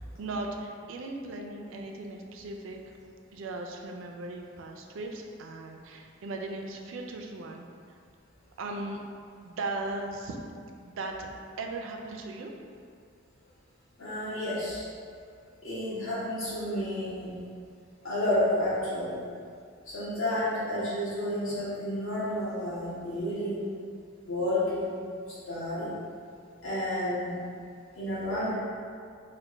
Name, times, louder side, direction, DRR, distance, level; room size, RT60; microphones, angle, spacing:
voice 1, 0.0-2.9 3.3-8.0 8.6-9.0 9.4-10.4 10.8-11.1 11.6-12.5, right 2 dB, 70° right, 2 dB, 0.4 m, -38 dB
voice 2, 14.0-14.8 15.6-17.3 18.0-19.2 19.9-23.7 24.2-24.9 25.5-25.9 26.6-27.4 27.9-28.5, left 1 dB, 75° left, -11 dB, 1.5 m, -30 dB
3.3 x 2.1 x 4.0 m, 2.3 s
head